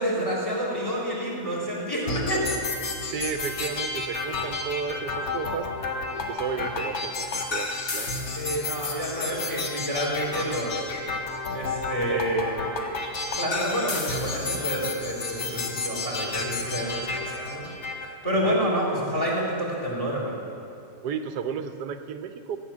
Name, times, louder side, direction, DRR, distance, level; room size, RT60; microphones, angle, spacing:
voice 1, 0.0-2.4 8.4-11.0 11.5-12.5 13.3-20.4, equal, 15° left, -5 dB, 3.8 m, -29 dB
sound 1, 2.1-18.1, left 3 dB, 50° left, 1.5 m, -31 dB
voice 2, 3.1-5.7 6.1-8.1 12.1-12.2 18.3-18.6 21.0-22.6, right 6 dB, 90° right, 9 dB, 1.3 m, -33 dB
14.5 x 9.6 x 7.3 m, 2.6 s
omnidirectional pair, 1.7 m